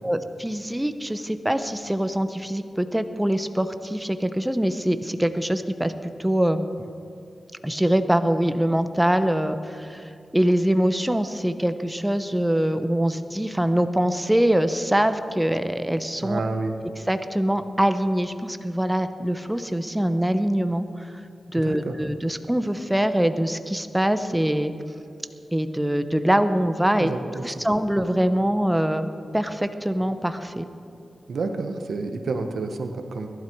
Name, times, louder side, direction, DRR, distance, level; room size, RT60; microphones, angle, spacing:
voice 1, 0.0-6.6 7.6-16.4 17.1-21.1 21.5-24.7 25.5-27.1 27.4-30.7, right 1 dB, 10° right, 10 dB, 0.9 m, -23 dB
voice 2, 16.2-16.7 21.6-22.0 27.0-27.7 31.3-33.3, right 3 dB, 80° right, 6 dB, 1.2 m, -29 dB
21.5 x 12.0 x 4.7 m, 2.5 s
cardioid pair, 55°, 0 cm